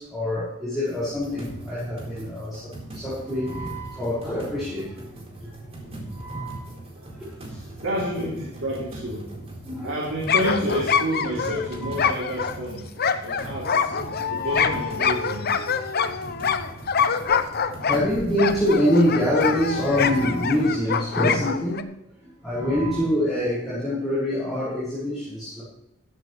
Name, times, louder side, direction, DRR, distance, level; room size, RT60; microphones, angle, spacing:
voice 1, 0.0-2.6 2.9-4.9 6.1-6.6 8.2-8.3 9.6-9.9 11.8-11.9 14.3-14.7 17.8-21.9 22.2-25.6, left 1 dB, ahead, -10 dB, 5.6 m, -25 dB
sound 1, 0.8-20.7, right 1 dB, 30° right, 4.0 m, -40 dB
voice 2, 6.9-7.5 7.8-9.4 9.8-12.8 13.2-13.9 14.3-15.5, equal, 70° right, -4 dB, 3.1 m, -30 dB
sound 2, 10.2-21.8, left 6 dB, 50° left, 0.8 m, -25 dB
15.5 x 12.5 x 3.2 m, 0.84 s
head